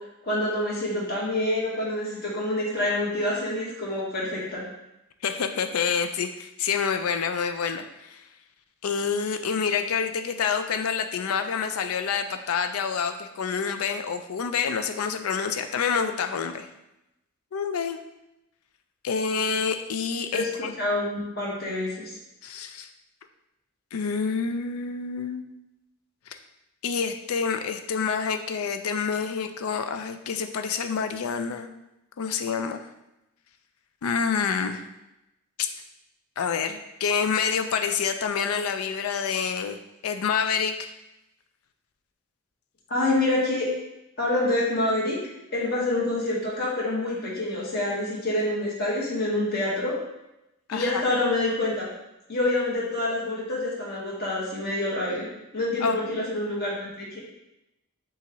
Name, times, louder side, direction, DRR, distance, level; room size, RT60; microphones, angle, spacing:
voice 1, 0.2-4.6 20.3-20.5 20.8-21.9 42.9-43.7 44.2-45.2 45.5-49.9 50.7-51.9 52.3-55.3 55.5-57.2, left 2 dB, 45° left, -5 dB, 1.4 m, -27 dB
voice 2, 5.2-8.3 8.8-16.7 17.5-18.0 19.0-20.8 22.4-22.9 23.9-25.4 26.3-26.4 26.8-31.7 32.2-32.9 34.0-34.9 35.6-35.7 36.4-39.8 40.0-40.9 50.7-51.0 55.8-56.3, left 6 dB, 85° left, 8 dB, 0.4 m, -27 dB
6.7 x 2.5 x 3.0 m, 0.91 s
head